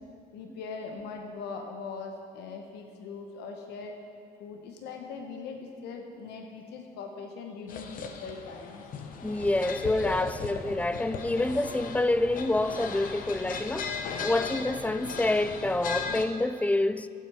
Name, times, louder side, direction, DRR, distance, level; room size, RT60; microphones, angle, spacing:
voice 1, 0.3-4.0 4.4-8.9, left 4 dB, 80° left, 1.0 m, -41 dB
sound 1, 7.7-16.2, left 5 dB, 55° left, 0.9 m, -37 dB
voice 2, 9.2-17.1, left 2 dB, 10° left, 0.3 m, -27 dB
13.5 x 8.0 x 4.8 m
cardioid pair, 110°, 17 cm